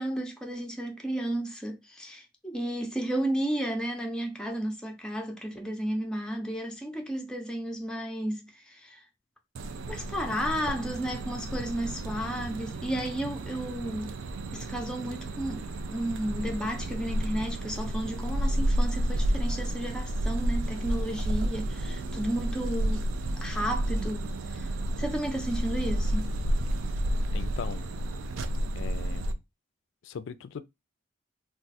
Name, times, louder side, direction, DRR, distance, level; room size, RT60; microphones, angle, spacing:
voice 1, 0.0-9.0 9.9-14.2 14.5-23.1 23.4-24.7 25.0-26.3, right 1 dB, 5° left, 0.5 m, -33 dB
sound 1, 9.5-29.3, right 1 dB, 85° right, 0.4 m, -31 dB
voice 2, 27.3-27.9 28.8-29.3 30.0-30.6, left 6 dB, 70° left, 0.3 m, -39 dB
2.4 x 2.3 x 4.0 m
head